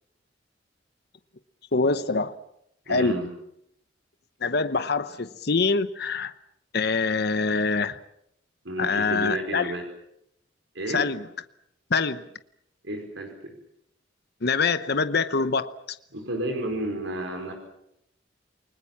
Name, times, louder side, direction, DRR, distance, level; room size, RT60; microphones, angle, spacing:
voice 1, 1.7-2.3 2.9-3.2 4.4-6.3 6.7-8.0 8.8-9.7 10.9-11.2 11.9-12.2 14.4-16.0, left 4 dB, 60° left, 0.9 m, -25 dB
voice 2, 2.9-3.3 8.6-9.8 10.7-11.0 12.8-13.5 16.1-17.5, right 1 dB, 80° right, 4.9 m, -31 dB
29.0 x 20.0 x 7.3 m
head